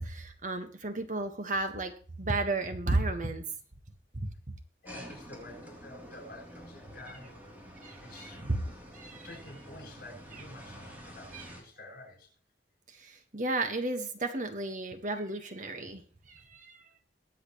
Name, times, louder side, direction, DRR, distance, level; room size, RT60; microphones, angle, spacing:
voice 1, 0.0-1.9 2.2-3.4 4.1-4.3 7.8-8.6 8.9-9.3 11.3-11.4 12.9-16.0 16.3-16.8, right 2 dB, 45° right, 6 dB, 1.6 m, -33 dB
voice 2, 4.8-7.4 8.0-8.4 9.2-12.3, left 2 dB, 55° left, -1 dB, 8.0 m, -49 dB
sound 1, 4.8-11.6, equal, 10° right, 3.4 m, -48 dB
22.5 x 8.0 x 3.2 m, 0.40 s
head